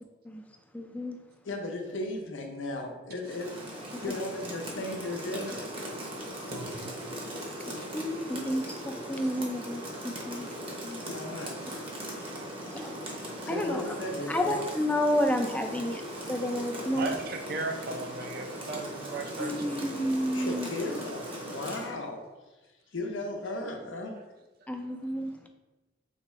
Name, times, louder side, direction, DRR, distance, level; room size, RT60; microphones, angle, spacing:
voice 1, 0.7-1.2 3.9-4.1 7.9-10.5 10.8-11.0 12.7-12.9 13.5-13.9 14.3-17.1 19.4-20.7 24.7-25.5, equal, 10° left, 4 dB, 0.3 m, -31 dB
voice 2, 1.5-3.5 4.0-5.7 11.0-11.7 13.5-14.6 20.3-22.2 22.9-24.1, left 2 dB, 85° left, 3 dB, 0.7 m, -36 dB
Rain, 3.2-21.9, equal, 30° right, 0.8 m, -39 dB
voice 3, 6.5-6.9 16.9-19.7, right 3 dB, 50° right, 4 dB, 0.5 m, -36 dB
4.0 x 3.5 x 3.1 m, 1.1 s
head